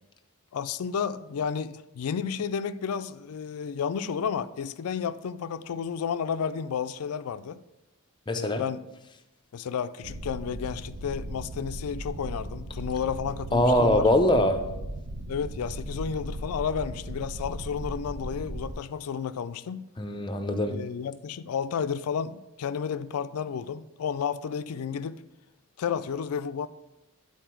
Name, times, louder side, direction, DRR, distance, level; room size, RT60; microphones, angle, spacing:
voice 1, 0.5-7.6 8.3-8.9 9.5-14.1 15.3-19.9 20.7-25.2 25.8-26.7, left 7 dB, 75° left, 0.4 m, -32 dB
voice 2, 8.3-8.6 13.5-14.6 20.0-20.8, left 1 dB, 20° left, 0.6 m, -22 dB
sound 1, 10.0-18.7, right 1 dB, 75° right, 0.8 m, -37 dB
10.0 x 4.1 x 4.5 m
head